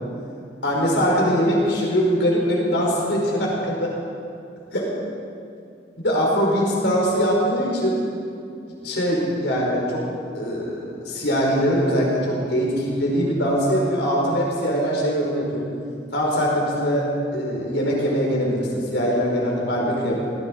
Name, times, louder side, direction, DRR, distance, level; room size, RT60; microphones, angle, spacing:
voice 1, 0.6-4.0 4.7-4.9 6.0-8.0 8.8-10.0 10.3-15.6 16.1-17.1 17.3-20.1, equal, 85° left, -3 dB, 5.2 m, -22 dB
18.5 x 16.0 x 4.8 m, 2.4 s
head